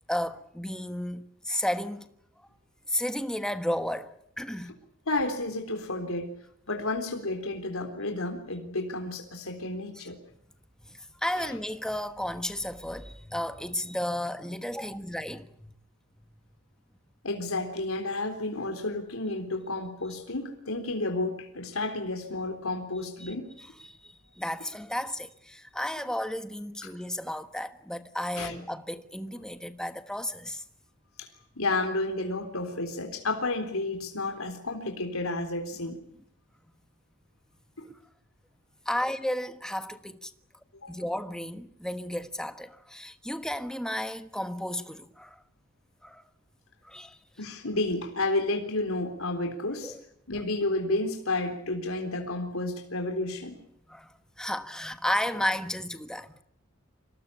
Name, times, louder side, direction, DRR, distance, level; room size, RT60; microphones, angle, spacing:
voice 1, 0.1-2.1 2.4-2.5 2.9-4.8 10.0-10.1 10.8-15.7 23.2-30.6 37.8-38.0 38.8-40.3 40.9-45.4 46.0-46.3 46.8-47.2 49.8-50.0 53.9-56.4, left 1 dB, 5° left, 1.3 m, -33 dB
voice 2, 5.1-6.3 6.7-10.2 11.4-11.5 17.2-23.5 26.8-26.9 28.4-28.5 31.2-31.3 31.6-36.0 37.8-37.9 40.7-41.0 47.4-50.0 50.3-53.6, left 2 dB, 85° left, 3.7 m, -31 dB
25.5 x 18.5 x 9.7 m
head